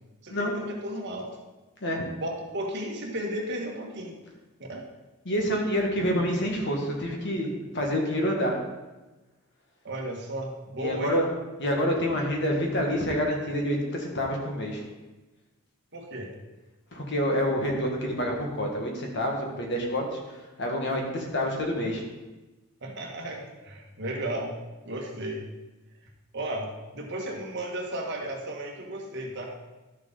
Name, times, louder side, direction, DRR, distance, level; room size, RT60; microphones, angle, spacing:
voice 1, 0.2-1.4 2.2-4.2 4.6-4.9 9.8-11.2 15.9-16.3 22.8-24.6 24.8-25.5 26.3-29.5, right 1 dB, 55° right, 1 dB, 1.5 m, -34 dB
voice 2, 5.3-8.6 10.8-11.3 11.6-14.8 16.9-22.0, equal, 55° left, 0 dB, 1.8 m, -27 dB
12.0 x 6.5 x 4.0 m, 1.1 s
head